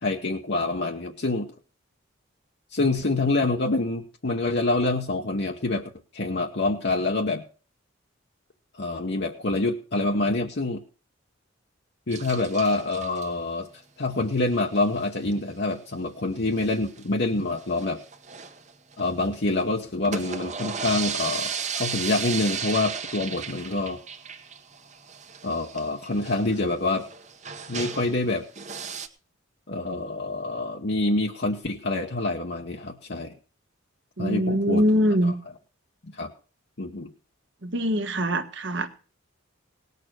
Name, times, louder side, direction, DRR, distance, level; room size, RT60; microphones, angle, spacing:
voice 1, 0.0-1.5 2.7-7.4 8.7-10.8 12.1-13.7 14.0-18.0 19.0-24.0 25.4-27.1 27.7-28.5 29.7-33.3 34.2-34.8 36.1-36.3 36.8-37.1, left 2 dB, 55° left, 2 dB, 1.0 m, -26 dB
sound 1, 12.1-13.2 14.5-14.8 15.0-15.1 15.3-15.4 15.7-15.8 16.4-17.0 17.5-19.4 19.9-28.2 28.5-29.1, right 6 dB, 35° right, 1.1 m, -35 dB
voice 2, 34.2-35.3 37.6-38.9, equal, 60° right, 8 dB, 1.4 m, -23 dB
18.5 x 6.8 x 6.2 m, 0.38 s
head